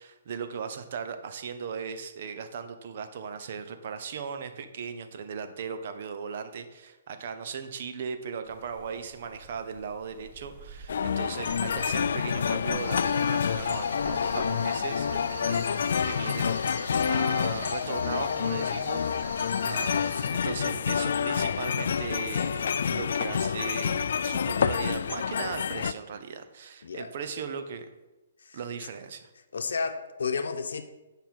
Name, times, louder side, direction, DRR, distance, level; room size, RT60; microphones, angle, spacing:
voice 1, 0.0-15.7 16.0-27.9 28.5-29.3, right 6 dB, 50° right, 0.8 m, -38 dB
sound 1, 8.4-25.0, right 3 dB, 25° right, 3.0 m, -53 dB
sound 2, 10.9-25.9, left 7 dB, 65° left, 0.3 m, -28 dB
sound 3, 12.8-20.3, right 3 dB, 85° right, 1.4 m, -44 dB
voice 2, 29.5-30.8, left 5 dB, 85° left, 0.9 m, -31 dB
9.4 x 5.4 x 4.6 m
hypercardioid pair, 165°, 0 cm